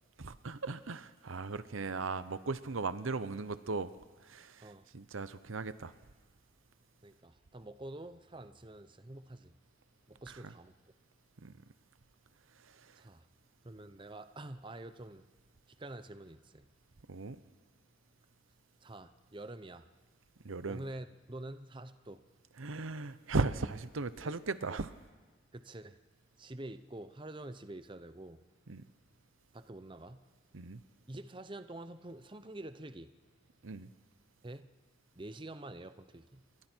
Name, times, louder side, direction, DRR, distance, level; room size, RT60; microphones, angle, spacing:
voice 1, 0.2-3.9 4.2-5.9 10.3-10.5 11.4-11.5 12.6-13.0 17.1-17.4 20.4-20.8 22.6-24.9 28.7-28.9 30.5-30.8 33.6-33.9, right 3 dB, 85° right, 14 dB, 0.9 m, -37 dB
voice 2, 7.0-9.5 10.1-10.7 13.0-13.3 13.6-15.3 15.7-16.7 18.8-19.8 20.7-22.2 24.2-24.4 24.7-24.8 25.5-26.0 26.4-28.4 29.5-30.2 31.1-33.1 34.4-34.7 35.2-36.4, right 1 dB, 25° right, 10 dB, 0.7 m, -47 dB
28.5 x 23.0 x 4.6 m, 1.4 s
head